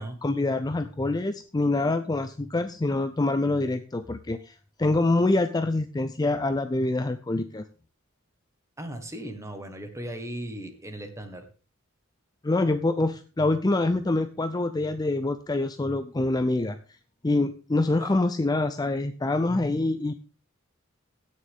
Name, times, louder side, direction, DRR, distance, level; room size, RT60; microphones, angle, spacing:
voice 1, 0.0-7.6 12.4-16.8 17.2-20.1, left 2 dB, 20° left, 10 dB, 0.5 m, -25 dB
voice 2, 8.8-11.5 17.9-18.2, right 1 dB, 15° right, 6 dB, 1.5 m, -37 dB
16.5 x 6.5 x 3.6 m, 0.35 s
head